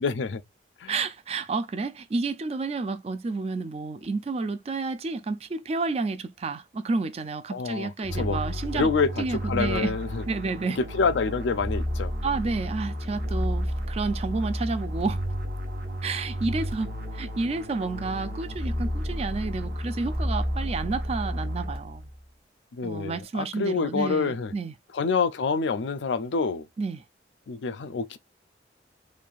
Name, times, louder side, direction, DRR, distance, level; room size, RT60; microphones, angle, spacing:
voice 1, 0.0-0.4 0.8-0.9 7.5-8.4 8.7-10.2 10.9-12.1 22.7-24.5 24.9-26.7 27.5-28.2, left 4 dB, 80° left, 0.4 m, -27 dB
voice 2, 0.9-8.9 9.2-9.9 10.3-10.8 12.2-15.2 16.0-22.1 22.8-24.7 26.8-27.0, right 3 dB, 35° right, 0.3 m, -30 dB
sound 1, 8.0-22.2, equal, 55° right, 0.9 m, -31 dB
3.2 x 2.6 x 2.4 m
head